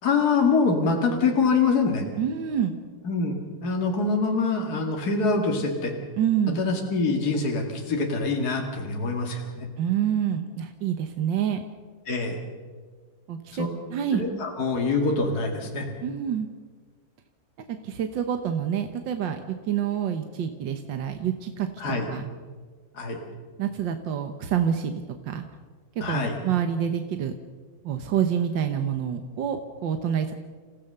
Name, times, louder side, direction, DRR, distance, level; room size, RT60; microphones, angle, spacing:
voice 1, 0.0-2.0 3.0-5.9 6.5-9.7 12.1-12.4 13.5-13.7 14.1-15.9 21.8-22.1 22.9-23.2 26.0-26.4, left 4 dB, 55° left, 1 dB, 2.7 m, -25 dB
voice 2, 2.2-2.8 6.2-6.6 9.8-11.6 13.3-14.2 16.0-16.5 17.8-21.7 22.1-22.2 23.6-24.9 25.3-25.4 26.0-27.3 27.8-30.3, right 9 dB, 80° right, 7 dB, 1.8 m, -27 dB
29.0 x 15.5 x 6.8 m, 1.5 s
omnidirectional pair, 2.0 m